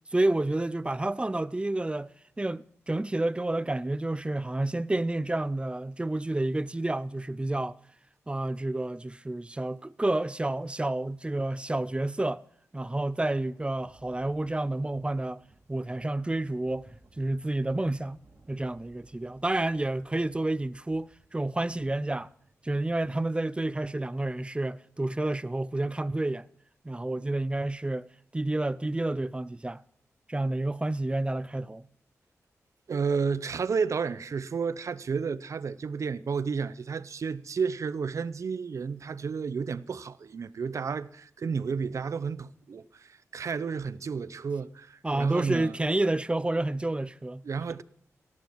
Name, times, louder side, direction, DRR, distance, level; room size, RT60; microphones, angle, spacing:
voice 1, 0.1-7.8 8.3-12.4 12.7-15.4 15.7-18.2 18.5-22.3 22.6-26.5 26.8-28.1 28.3-29.8 30.3-31.9 45.0-47.4, right 2 dB, 20° right, 0.5 m, -29 dB
Thunder, 12.9-23.5, right 2 dB, 45° right, 2.5 m, -61 dB
voice 2, 32.9-45.8 47.4-47.8, right 5 dB, 65° right, 0.7 m, -32 dB
17.5 x 14.5 x 4.7 m
cardioid pair, 55°, 6 cm